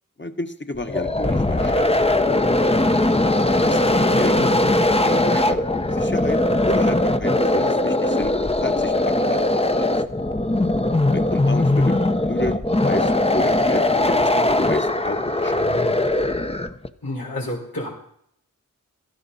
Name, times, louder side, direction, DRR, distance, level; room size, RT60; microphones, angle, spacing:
voice 1, 0.2-1.9 2.4-2.6 3.6-4.4 5.0-5.6 5.9-6.4 6.6-8.3 8.6-10.0 11.1-13.8 14.2-15.6, left 2 dB, 35° left, 7 dB, 1.4 m, -31 dB
sound 1, 0.8-16.9, left 1 dB, 15° left, 0.8 m, -20 dB
voice 2, 4.1-4.6 17.0-17.9, left 1 dB, 90° left, -4 dB, 5.1 m, -30 dB
17.5 x 13.5 x 4.2 m, 0.68 s
wide cardioid pair, 55°, 34 cm